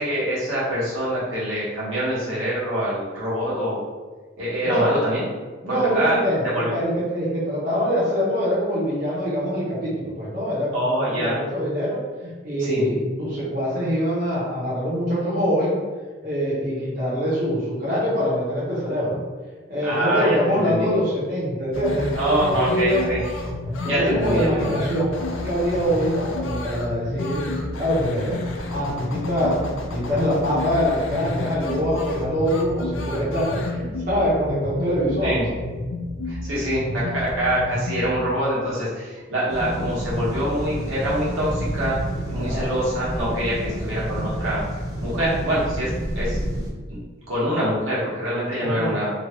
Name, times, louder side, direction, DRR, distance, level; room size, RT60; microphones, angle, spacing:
voice 1, 0.0-3.8 4.4-5.2 5.7-6.1 6.5-6.8 10.7-11.4 12.6-12.8 19.8-20.9 22.1-23.2 23.8-24.9 35.2-35.5 36.2-42.0 42.3-44.6 45.0-46.6 46.9-47.0 47.3-49.1, right 1 dB, 90° right, -8 dB, 1.2 m, -25 dB
voice 2, 4.6-5.0 5.6-6.4 6.7-15.8 16.2-19.2 19.7-23.1 23.8-25.2 25.4-28.4 28.6-29.6 29.9-35.4 42.3-42.7 43.6-43.8 48.6-48.9, equal, 45° right, -9 dB, 0.8 m, -24 dB
sound 1, 21.7-38.1, left 2 dB, 80° left, 0.4 m, -30 dB
sound 2, 39.5-46.7, equal, 20° right, 0.5 m, -29 dB
3.0 x 2.3 x 2.9 m, 1.4 s
head